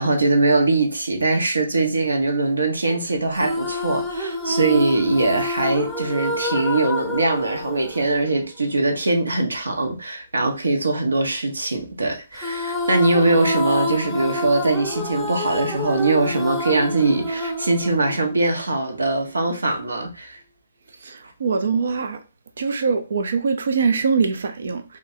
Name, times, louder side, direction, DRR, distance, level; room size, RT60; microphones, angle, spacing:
voice 1, 0.0-20.4, right 2 dB, 85° right, 1.1 m, -22 dB
sound 1, 3.3-8.8 12.3-18.8, left 1 dB, ahead, 0.8 m, -27 dB
voice 2, 21.0-22.2 22.6-25.0, right 5 dB, 65° right, 0.6 m, -23 dB
3.1 x 2.6 x 4.3 m
hypercardioid pair, 140°, 0 cm